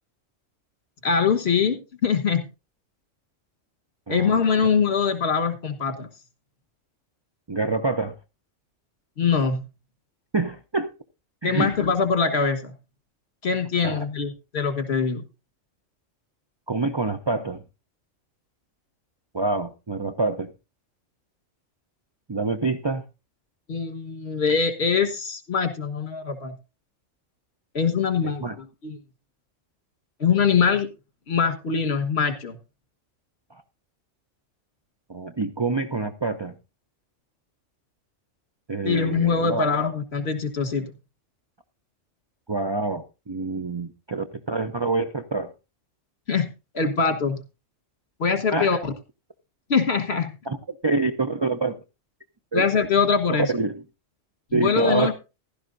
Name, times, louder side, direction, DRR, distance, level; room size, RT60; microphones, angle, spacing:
voice 1, 1.0-2.4 4.1-6.1 9.2-9.6 11.4-12.7 13.4-15.2 23.7-26.5 27.7-29.0 30.2-30.9 31.3-32.6 38.8-40.9 46.3-46.5 46.7-47.4 48.2-48.9 49.7-50.3 52.5-53.5 54.5-55.1, left 6 dB, 55° left, 1.7 m, -23 dB
voice 2, 4.1-4.4 7.5-8.1 10.3-10.9 11.4-11.7 13.8-14.0 16.7-17.6 19.3-20.5 22.3-23.0 28.2-28.5 35.1-36.5 38.7-39.7 42.5-45.5 48.5-48.7 50.5-50.6 50.8-51.8 52.5-52.6 53.3-53.8 54.5-55.1, right 3 dB, 30° right, 0.4 m, -26 dB
15.5 x 12.0 x 2.6 m
omnidirectional pair, 1.3 m